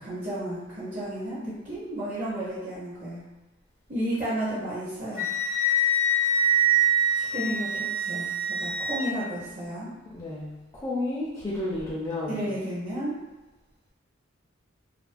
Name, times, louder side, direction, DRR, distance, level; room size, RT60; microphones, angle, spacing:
voice 1, 0.0-3.2 3.9-5.3 7.1-9.9 12.3-13.2, right 1 dB, 40° right, -9 dB, 0.6 m, -32 dB
Wind instrument woodwind instrument, 5.1-9.0, right 2 dB, 75° right, 0.8 m, -24 dB
voice 2, 10.1-12.5, left 2 dB, 20° left, -7 dB, 0.4 m, -32 dB
2.3 x 2.1 x 2.4 m, 1.1 s
head